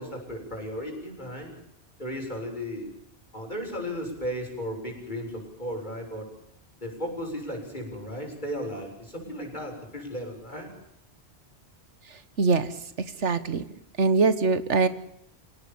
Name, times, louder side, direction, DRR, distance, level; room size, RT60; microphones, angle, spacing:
voice 1, 0.0-1.5 2.0-2.9 3.3-6.3 6.8-10.7, equal, 40° left, 2 dB, 7.4 m, -35 dB
voice 2, 12.4-12.7 13.2-13.6 14.0-14.9, right 4 dB, 80° right, 13 dB, 1.7 m, -22 dB
28.5 x 17.5 x 7.1 m, 0.72 s
omnidirectional pair, 1.2 m